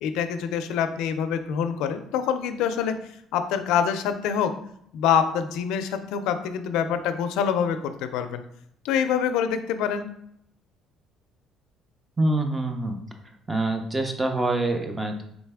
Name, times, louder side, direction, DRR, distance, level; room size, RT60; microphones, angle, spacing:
voice 1, 0.0-3.0 3.3-4.5 4.9-8.4 8.8-10.1, left 8 dB, 85° left, 9 dB, 0.4 m, -25 dB
voice 2, 12.2-13.0 13.5-15.2, right 2 dB, 15° right, 4 dB, 0.6 m, -25 dB
4.0 x 3.2 x 3.5 m, 0.71 s
cardioid pair, 140°, 0 cm